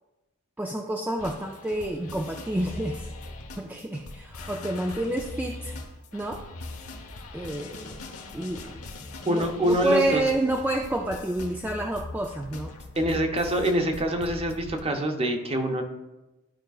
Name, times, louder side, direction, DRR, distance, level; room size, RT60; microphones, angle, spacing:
voice 1, 0.6-3.1 3.6-5.7 6.1-6.4 7.3-8.0 8.3-8.9 9.2-12.7, right 1 dB, 10° right, 1 dB, 0.3 m, -29 dB
sound 1, 1.2-14.8, left 2 dB, 85° left, 1.0 m, -41 dB
voice 2, 9.3-10.2 13.0-15.8, right 1 dB, 25° right, 5 dB, 0.7 m, -25 dB
11.5 x 5.0 x 2.4 m, 1.0 s
head